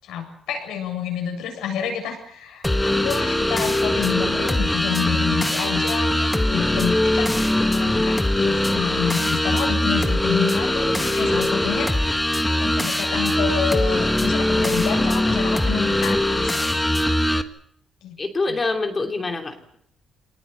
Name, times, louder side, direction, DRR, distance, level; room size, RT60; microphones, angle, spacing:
voice 1, 0.0-7.4 7.7-11.9 12.6-16.7 18.0-18.1, left 7 dB, 90° left, 4 dB, 7.8 m, -28 dB
sound 1, 2.6-17.4, left 1 dB, 10° left, 1.7 m, -21 dB
voice 2, 18.2-19.8, left 3 dB, 30° left, 4 dB, 3.1 m, -26 dB
25.5 x 19.5 x 8.3 m, 0.71 s
cardioid pair, 90°, 0 cm